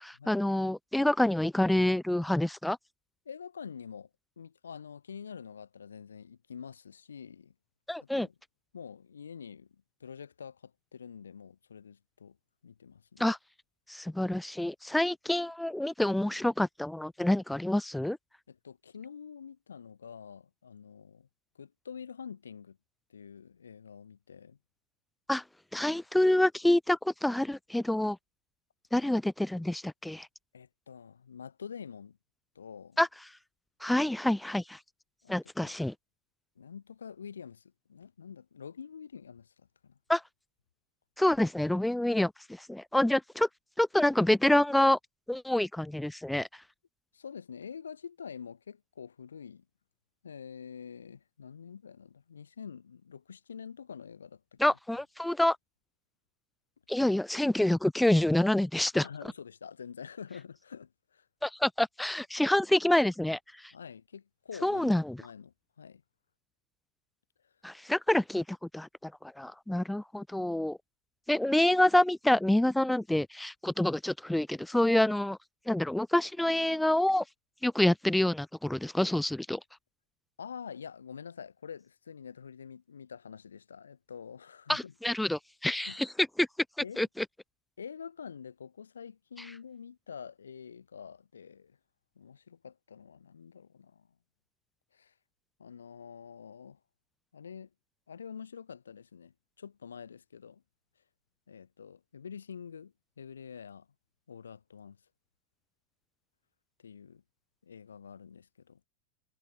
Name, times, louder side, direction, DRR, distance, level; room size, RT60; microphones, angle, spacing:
voice 1, 0.0-2.8 7.9-8.3 13.2-13.4 13.9-18.2 25.3-25.4 25.7-28.2 28.9-30.3 33.0-33.1 33.8-34.8 35.3-35.9 40.1-40.2 41.2-43.5 43.8-45.0 45.3-46.6 54.6-55.6 56.9-59.1 61.4-63.7 64.6-65.2 67.6-70.8 71.3-75.4 75.7-77.2 77.6-79.6 84.7-86.1 86.4-86.5 87.0-87.2, left 1 dB, 5° left, 0.4 m, -27 dB
voice 2, 3.3-4.1 4.4-7.5 8.0-8.3 8.7-12.4 12.6-13.2 18.5-21.3 21.5-22.8 23.1-24.6 29.0-29.1 30.5-32.2 32.5-33.0 35.2-35.8 36.6-40.0 47.1-49.6 50.2-54.8 58.9-61.3 63.7-66.0 67.4-67.5 80.4-84.9 85.7-86.0 86.8-87.0 87.8-91.8 92.2-94.1 94.9-95.1 95.6-96.8 97.3-97.7 98.1-100.6 101.5-103.9 104.3-105.0 106.8-107.2 107.6-108.8, left 7 dB, 80° left, 5.8 m, -46 dB
figure-of-eight pair, 90°, 0 cm